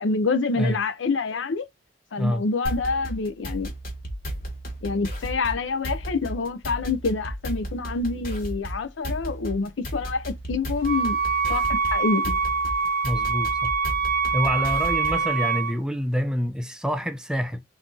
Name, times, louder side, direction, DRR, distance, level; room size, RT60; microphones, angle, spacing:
voice 1, 0.0-1.7 2.1-3.7 4.8-11.2 11.5-12.4, left 3 dB, 90° left, 0.6 m, -27 dB
sound 1, 2.6-15.3, right 1 dB, 50° left, 1.3 m, -34 dB
Wind instrument woodwind instrument, 10.8-15.8, right 5 dB, 55° right, 0.5 m, -24 dB
voice 2, 13.0-13.7 14.3-17.6, equal, 5° right, 0.4 m, -27 dB
3.7 x 2.6 x 3.7 m
head